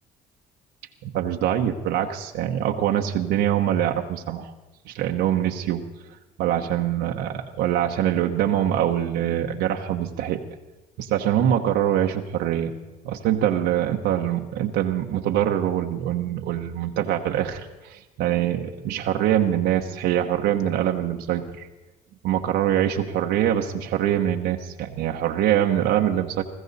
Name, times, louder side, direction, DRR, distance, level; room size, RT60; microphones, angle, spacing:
voice 1, 1.0-4.5 4.9-5.8 6.4-10.4 11.0-12.7 13.0-21.7 22.2-26.4, right 11 dB, 85° right, 2 dB, 1.0 m, -24 dB
20.0 x 15.0 x 4.1 m, 1.1 s
cardioid pair, 110°, 17 cm